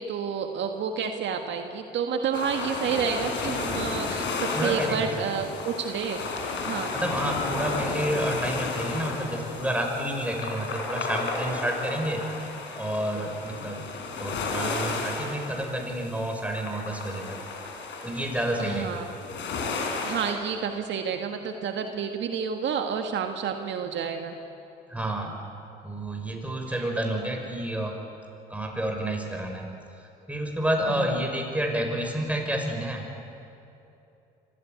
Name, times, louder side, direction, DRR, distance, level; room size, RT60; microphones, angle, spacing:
voice 1, 0.0-6.2 6.6-6.9 18.6-19.1 20.0-24.3 26.7-26.8 30.9-31.1, right 6 dB, 65° right, 5 dB, 1.7 m, -30 dB
sound 1, 2.3-20.3, left 4 dB, 65° left, 4.1 m, -33 dB
voice 2, 4.5-5.2 6.9-12.2 12.8-13.9 14.2-17.4 18.0-19.0 24.9-25.3 25.8-27.9 28.5-29.7 30.3-33.0, right 1 dB, 5° right, 2 dB, 6.1 m, -29 dB
24.5 x 16.0 x 9.6 m, 2.8 s
supercardioid pair, 65°, 20 cm